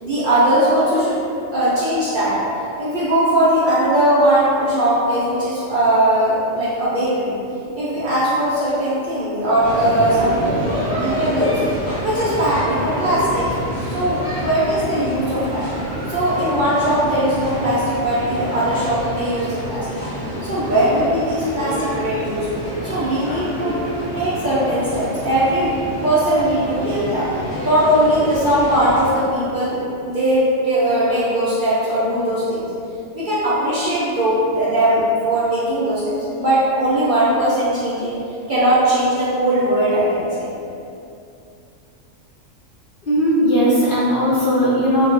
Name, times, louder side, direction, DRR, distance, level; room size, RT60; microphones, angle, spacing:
voice 1, 0.0-1.2 1.5-2.4 2.8-7.4 7.7-10.4 11.0-11.6 12.0-13.5 13.8-15.7 16.1-19.9 20.4-22.5 22.8-23.9 24.1-25.7 26.0-27.3 27.6-32.7 33.1-38.1 38.5-40.6, right 1 dB, 55° right, -10 dB, 0.6 m, -19 dB
sound 1, 9.6-29.1, equal, 15° left, 0.7 m, -28 dB
voice 2, 43.1-45.1, equal, 55° left, -9 dB, 0.6 m, -17 dB
2.3 x 2.0 x 3.7 m, 2.6 s
omnidirectional pair, 1.3 m